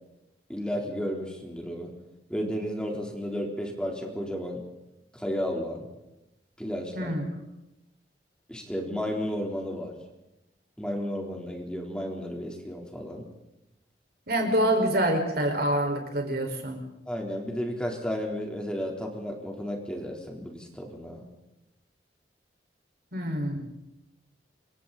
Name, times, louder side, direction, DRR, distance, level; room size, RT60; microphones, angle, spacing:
voice 1, 0.5-1.9 2.3-4.6 5.1-5.9 6.6-7.1 8.5-10.0 10.8-13.2 17.1-21.2, equal, 5° left, 0 dB, 3.8 m, -33 dB
voice 2, 14.3-16.8 23.1-23.6, right 1 dB, 60° right, 3 dB, 5.2 m, -26 dB
29.0 x 26.0 x 4.2 m, 0.90 s
head